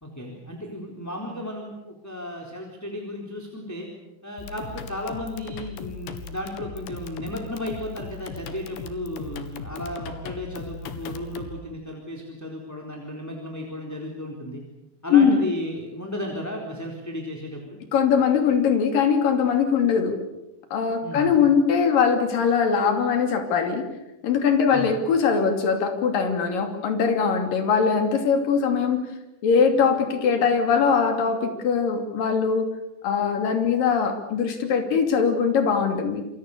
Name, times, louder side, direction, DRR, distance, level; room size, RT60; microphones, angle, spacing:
voice 1, 0.0-3.9 4.2-14.6 15.0-17.8 21.0-21.3 24.7-24.9, left 1 dB, 5° left, 0 dB, 3.0 m, -34 dB
sound 1, 4.4-11.6, left 4 dB, 65° left, 3.7 m, -38 dB
voice 2, 17.9-20.1 20.7-23.9 24.2-29.0 29.4-32.6 33.0-36.2, left 6 dB, 50° left, 6 dB, 4.1 m, -21 dB
28.5 x 24.0 x 6.8 m, 0.94 s
omnidirectional pair, 5.6 m